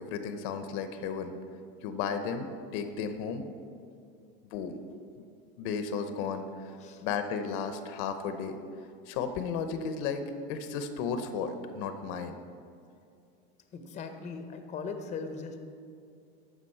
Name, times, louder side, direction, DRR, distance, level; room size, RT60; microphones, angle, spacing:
voice 1, 0.0-1.3 1.8-3.4 4.5-4.8 5.2-5.3 5.6-6.7 7.0-8.6 9.1-12.3, left 6 dB, 60° left, 8 dB, 0.8 m, -34 dB
voice 2, 13.7-15.6, left 4 dB, 25° left, 7 dB, 0.8 m, -39 dB
12.5 x 5.1 x 4.5 m, 2.5 s
supercardioid pair, 120°, 29 cm